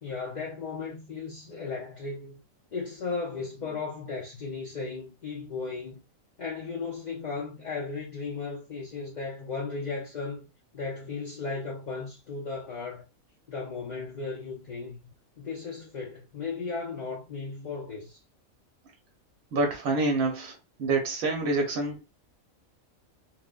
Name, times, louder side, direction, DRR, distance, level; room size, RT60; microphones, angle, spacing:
voice 1, 0.0-2.4 2.7-6.0 6.4-10.5 10.7-13.0 13.5-15.0 15.4-18.2, left 4 dB, 55° left, 0.5 m, -35 dB
voice 2, 19.5-22.0, right 3 dB, 90° right, 1.2 m, -27 dB
2.9 x 2.1 x 2.3 m
omnidirectional pair, 1.4 m